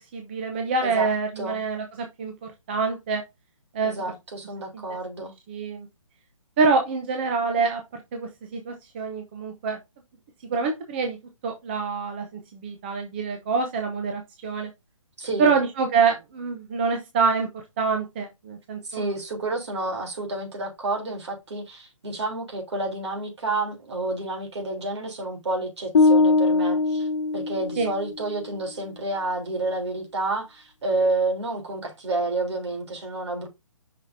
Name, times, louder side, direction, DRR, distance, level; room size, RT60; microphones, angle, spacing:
voice 1, 0.1-3.2 3.7-3.9 4.7-4.8 5.5-5.9 6.6-7.8 8.1-9.8 10.5-11.2 11.4-14.7 15.4-19.1 27.8-27.9, right 4 dB, 20° right, 0.7 m, -26 dB
voice 2, 0.8-1.6 3.8-5.3 15.2-15.6 18.9-27.1 27.3-33.5, right 2 dB, 55° right, 3.4 m, -29 dB
sound 1, 25.9-28.1, left 3 dB, 60° left, 1.2 m, -21 dB
6.7 x 5.9 x 2.7 m
hypercardioid pair, 165°, 17 cm